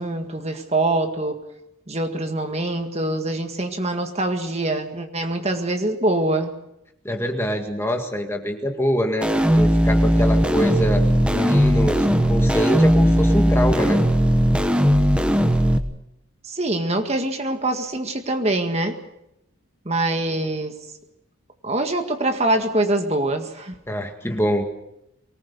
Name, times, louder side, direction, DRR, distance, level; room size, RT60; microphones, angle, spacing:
voice 1, 0.0-1.4 1.9-6.5 16.4-19.0 19.9-20.8 21.6-23.8, right 2 dB, 30° right, 5 dB, 1.9 m, -24 dB
voice 2, 7.0-9.3 9.6-11.1 11.3-14.0 23.9-24.6, equal, 10° left, 4 dB, 1.9 m, -24 dB
sound 1, 9.2-15.8, equal, 5° right, 1.1 m, -18 dB
24.0 x 19.5 x 6.9 m, 0.82 s
head